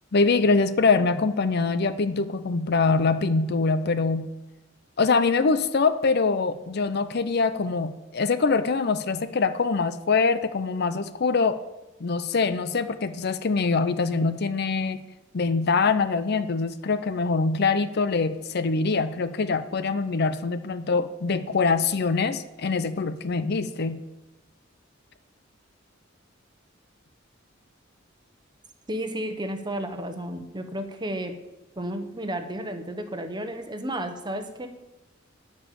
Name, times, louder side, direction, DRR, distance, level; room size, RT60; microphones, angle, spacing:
voice 1, 0.1-4.3 5.0-11.6 12.0-15.0 15.3-24.0, left 4 dB, 55° left, 12 dB, 0.6 m, -24 dB
voice 2, 28.9-31.3 31.8-34.7, right 1 dB, 25° right, 7 dB, 1.0 m, -32 dB
12.0 x 5.4 x 8.5 m, 1.0 s
head